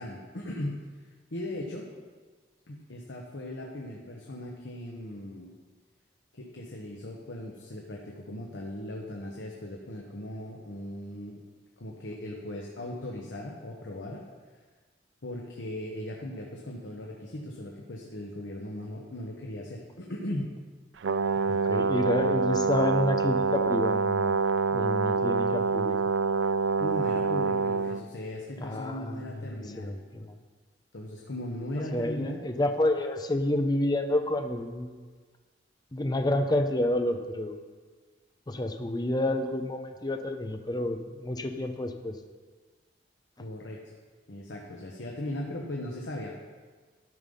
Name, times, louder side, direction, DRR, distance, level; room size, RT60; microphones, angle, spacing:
voice 1, 0.0-1.9 2.7-5.5 6.3-11.4 11.8-14.2 15.2-20.5 26.8-30.2 30.9-32.4 43.4-43.9 44.3-46.4, left 1 dB, 80° left, -1 dB, 1.1 m, -38 dB
Brass instrument, 21.0-28.0, right 4 dB, 75° right, 0.4 m, -26 dB
voice 2, 21.4-24.4 24.7-26.0 28.6-30.3 31.8-35.0 35.9-37.6 38.5-42.2, left 1 dB, 20° left, 6 dB, 0.6 m, -29 dB
13.0 x 5.5 x 5.3 m, 1.5 s
head